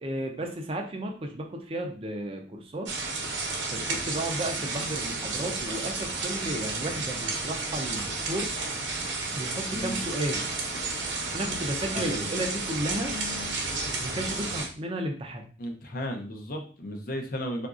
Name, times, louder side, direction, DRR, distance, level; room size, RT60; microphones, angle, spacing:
voice 1, 0.0-2.9 3.7-8.5 9.3-10.5 11.3-13.1 14.0-15.4, right 1 dB, 30° right, 3 dB, 0.5 m, -33 dB
sound 1, 2.8-14.7, right 3 dB, 90° right, 0.7 m, -32 dB
voice 2, 9.7-10.0 11.9-12.3 15.6-17.7, equal, 50° left, 3 dB, 0.5 m, -34 dB
3.8 x 2.5 x 2.4 m, 0.40 s
head